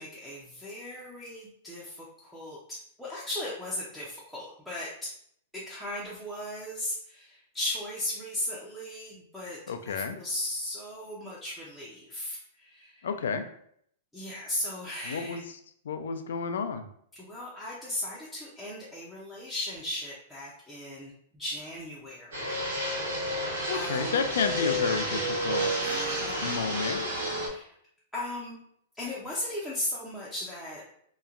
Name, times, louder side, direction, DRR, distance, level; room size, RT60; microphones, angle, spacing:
voice 1, 0.0-5.1 5.5-9.6 9.9-13.1 14.1-15.4 17.1-22.5 23.0-23.4 23.7-24.3 25.8-26.6 27.4-27.7 28.1-28.6 28.9-30.8, left 1 dB, ahead, -8 dB, 0.5 m, -37 dB
voice 2, 9.7-10.2 13.0-13.5 15.1-15.4 15.9-16.9 23.7-25.7 26.4-27.0, left 5 dB, 85° left, 8 dB, 0.4 m, -31 dB
Fixed-wing aircraft airplane, 22.3-27.5, equal, 85° right, 1.2 m, -30 dB
2.9 x 2.1 x 2.4 m, 0.67 s
hypercardioid pair, 150°, 0 cm